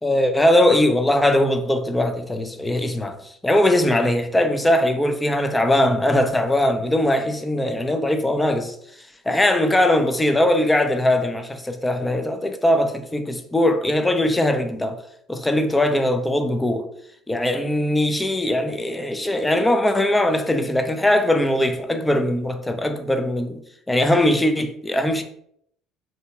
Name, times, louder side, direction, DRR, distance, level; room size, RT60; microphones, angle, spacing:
voice 1, 0.0-8.8 9.3-15.0 15.3-16.9 17.3-23.6 23.9-25.2, left 1 dB, 10° left, 0.4 m, -20 dB
2.8 x 2.6 x 2.4 m
supercardioid pair, 90°, 0 cm